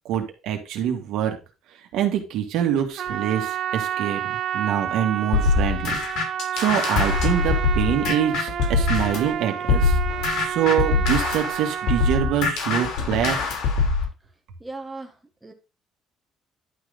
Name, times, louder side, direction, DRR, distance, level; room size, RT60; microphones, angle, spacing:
voice 1, 0.1-1.4 1.9-6.2 6.5-10.0 10.4-13.4, right 9 dB, 85° right, 3 dB, 2.0 m, -25 dB
Trumpet, 3.0-12.5, right 10 dB, 55° right, 0.6 m, -30 dB
sound 1, 5.3-9.3 9.7-14.1, left 4 dB, 80° left, 3.5 m, -23 dB
voice 2, 14.6-15.1 15.4-15.5, right 3 dB, 10° right, 3 dB, 1.4 m, -36 dB
11.0 x 4.0 x 5.1 m, 0.30 s
cardioid pair, 140°, 0 cm